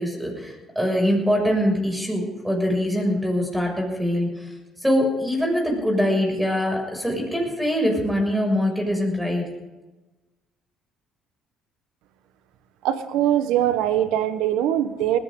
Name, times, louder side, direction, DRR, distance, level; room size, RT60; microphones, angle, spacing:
voice 1, 0.0-4.5 4.8-9.5, equal, 5° right, 0 dB, 6.8 m, -23 dB
voice 2, 12.8-15.2, right 11 dB, 85° right, 11 dB, 1.2 m, -22 dB
20.0 x 16.0 x 3.9 m, 1.1 s
supercardioid pair, 85°, 0 cm